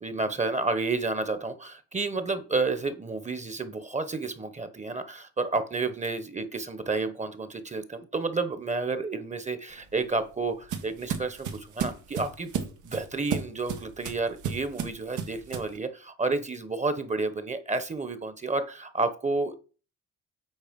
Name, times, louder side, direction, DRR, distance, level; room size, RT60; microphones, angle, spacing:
voice 1, 0.0-12.5 12.8-19.6, right 3 dB, 25° right, 11 dB, 1.1 m, -30 dB
sound 1, 9.7-15.8, right 7 dB, 85° right, 1.5 m, -34 dB
8.2 x 4.2 x 5.2 m, 0.36 s
cardioid pair, 90°, 30 cm